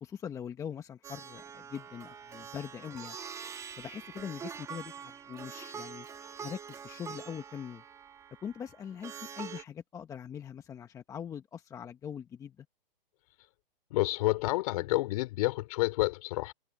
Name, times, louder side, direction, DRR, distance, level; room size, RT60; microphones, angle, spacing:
voice 1, 0.0-3.2 3.8-6.1 6.4-7.8 8.4-12.7, left 8 dB, 10° left, 1.2 m, -42 dB
Plucked string instrument, 1.0-9.6, right 7 dB, 10° right, 1.8 m, -45 dB
voice 2, 13.9-16.5, left 19 dB, 40° left, 3.8 m, -29 dB
hypercardioid pair, 150°, 29 cm